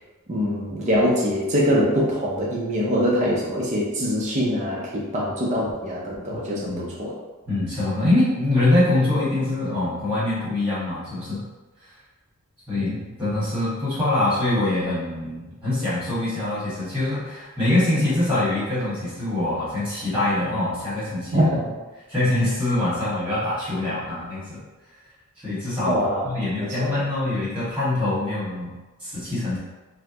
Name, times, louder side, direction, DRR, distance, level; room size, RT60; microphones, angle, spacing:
voice 1, 0.3-7.1 12.7-13.0 21.3-21.6 25.9-26.2 26.8-26.9, equal, 30° right, -5 dB, 0.6 m, -23 dB
voice 2, 6.3-6.9 7.5-11.4 12.7-21.5 22.1-24.6 25.4-28.7 29.0-29.6, left 2 dB, 5° right, -10 dB, 1.4 m, -24 dB
4.2 x 2.1 x 2.8 m, 1.2 s
head